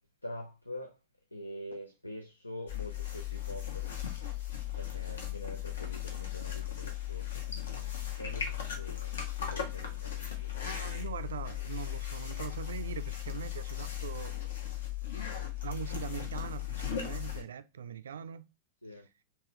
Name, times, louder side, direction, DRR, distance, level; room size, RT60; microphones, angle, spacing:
voice 1, 0.2-1.0 1.3-4.2 4.7-10.6 18.8-19.1, left 1 dB, 85° left, 0.4 m, -45 dB
sound 1, 2.7-17.4, left 11 dB, 65° left, 0.9 m, -37 dB
voice 2, 10.6-14.4 15.6-18.5, right 8 dB, 65° right, 0.3 m, -42 dB
3.8 x 2.8 x 2.8 m
figure-of-eight pair, 90°, 0 cm